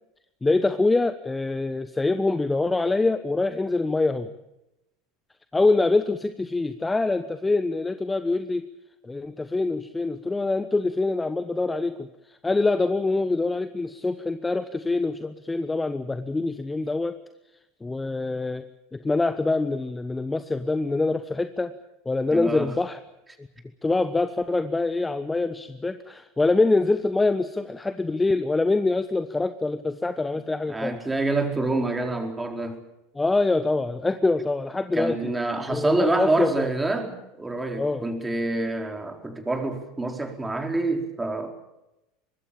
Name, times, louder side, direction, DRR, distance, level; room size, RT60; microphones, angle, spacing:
voice 1, 0.4-4.3 5.5-8.7 9.0-12.1 12.4-17.2 17.8-18.6 18.9-21.7 22.0-23.0 23.8-31.0 33.1-35.2 35.5-36.7 37.8-38.0, left 3 dB, 15° left, 12 dB, 1.1 m, -25 dB
voice 2, 22.3-22.7 30.7-32.8 34.9-41.5, right 2 dB, 10° right, 4 dB, 4.6 m, -27 dB
24.5 x 21.0 x 7.3 m, 0.93 s
figure-of-eight pair, 80°, 0 cm